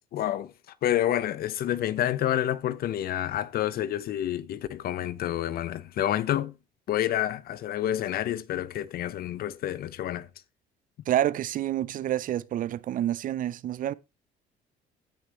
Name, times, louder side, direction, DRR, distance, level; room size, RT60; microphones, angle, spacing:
voice 1, 0.1-0.5 0.8-6.5 6.9-10.3, left 12 dB, 65° left, 0.9 m, -28 dB
voice 2, 11.1-13.9, right 12 dB, 55° right, 0.5 m, -28 dB
16.0 x 6.5 x 3.1 m
cardioid pair, 110°, 17 cm